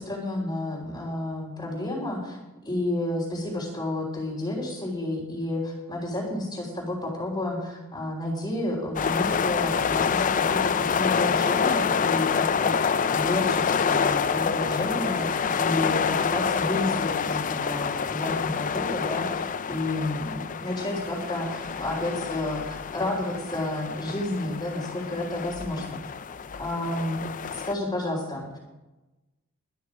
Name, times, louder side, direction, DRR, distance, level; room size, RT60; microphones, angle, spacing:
voice 1, 0.0-2.4 2.6-26.0 26.6-27.2 27.5-28.6, left 1 dB, 20° left, -6 dB, 3.4 m, -31 dB
sound 1, 8.9-27.7, left 6 dB, 35° left, 0.4 m, -27 dB
22.0 x 10.0 x 4.9 m, 1.1 s
head